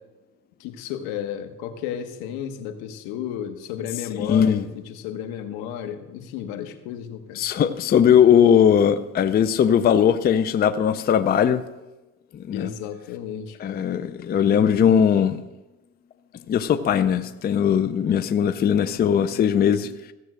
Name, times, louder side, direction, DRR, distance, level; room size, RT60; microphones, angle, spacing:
voice 1, 0.6-7.4 12.5-13.9, left 9 dB, 85° left, 8 dB, 1.4 m, -33 dB
voice 2, 4.2-4.6 7.4-11.6 12.3-12.7 13.6-15.4 16.5-19.9, left 8 dB, 25° left, 12 dB, 0.5 m, -19 dB
15.0 x 7.7 x 6.3 m, 1.1 s
cardioid pair, 135°, 36 cm